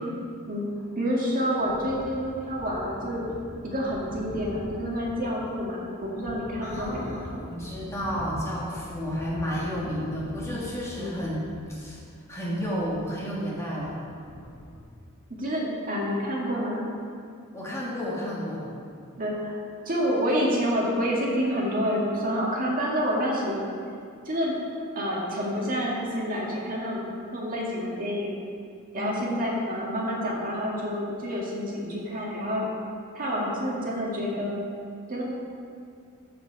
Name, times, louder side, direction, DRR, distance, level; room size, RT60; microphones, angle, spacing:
voice 1, 0.9-3.2 3.6-7.2 11.0-11.2 15.4-16.8 19.2-19.5 19.9-23.6 24.3-24.6 25.0-27.0 27.3-28.3 28.9-32.7 33.1-34.6 35.1-35.2, equal, 40° right, -4 dB, 1.9 m, -28 dB
sound 1, 1.6-14.8, equal, 80° left, 1.3 m, -43 dB
voice 2, 6.6-11.4 11.7-12.0 12.3-14.0 17.5-18.6 28.9-29.4, equal, 15° left, -6 dB, 1.7 m, -32 dB
14.0 x 5.1 x 4.6 m, 2.3 s
head